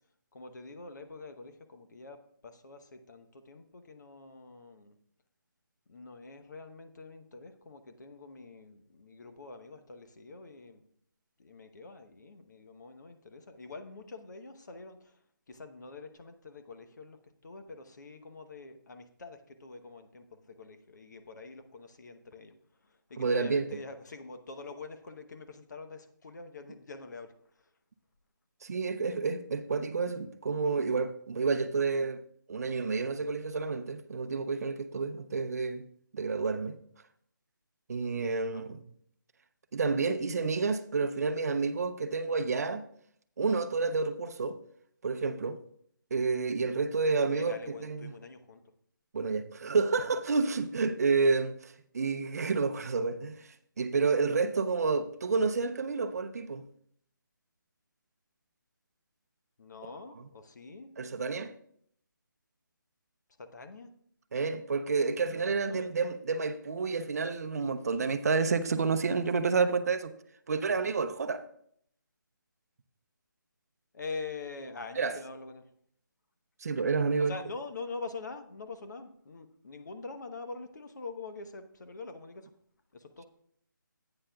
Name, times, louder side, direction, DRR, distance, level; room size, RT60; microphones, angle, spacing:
voice 1, 0.3-4.9 5.9-10.8 11.4-15.2 15.5-17.2 17.4-22.5 22.8-27.7 38.4-38.6 47.3-48.6 59.6-60.9 63.4-63.9 65.3-66.0 73.9-75.6 77.2-82.5 82.9-83.3, left 3 dB, 55° left, 1.0 m, -45 dB
voice 2, 23.2-23.6 28.6-32.2 32.5-35.8 36.1-36.8 37.9-38.8 39.7-42.8 43.4-44.6 45.0-45.6 46.1-48.1 49.1-53.5 53.8-56.6 61.0-61.5 64.3-70.1 70.5-71.4 75.0-75.1 76.6-77.3, right 4 dB, 45° right, 0.6 m, -29 dB
11.0 x 8.9 x 2.3 m
hypercardioid pair, 170°, 11 cm